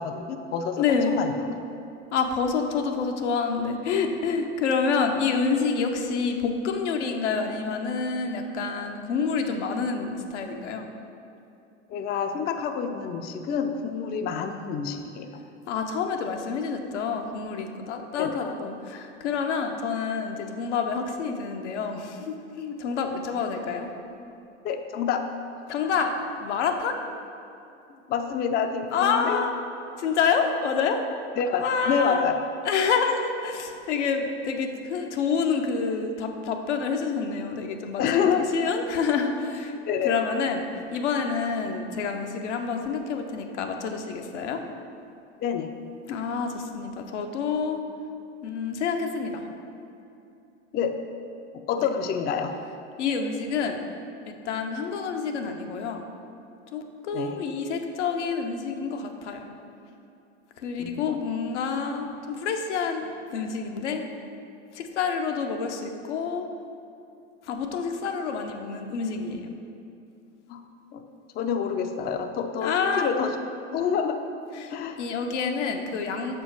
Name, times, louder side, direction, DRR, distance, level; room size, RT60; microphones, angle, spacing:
voice 1, 0.0-1.3 11.9-15.3 18.2-18.4 24.6-25.3 28.1-29.4 31.4-32.4 38.0-38.5 39.9-40.1 45.4-45.7 50.7-51.0 51.5-52.5 57.1-57.4 60.8-61.2 70.5-70.6 70.9-71.0 71.4-73.3 73.7-74.2 74.7-75.0, left 7 dB, 30° left, 6 dB, 0.4 m, -27 dB
voice 2, 0.8-1.2 2.1-10.9 15.7-23.9 25.7-26.1 26.4-27.0 28.9-29.5 30.0-31.0 31.6-32.3 32.6-39.8 40.0-40.6 40.9-44.6 46.1-47.8 48.4-49.4 51.8-51.9 53.0-53.9 54.3-56.1 56.7-59.5 60.6-64.0 64.7-66.5 67.4-69.5 72.6-73.1 74.5-76.4, left 5 dB, 75° left, 4 dB, 0.7 m, -28 dB
6.2 x 4.4 x 4.6 m, 2.7 s
hypercardioid pair, 80°, 35 cm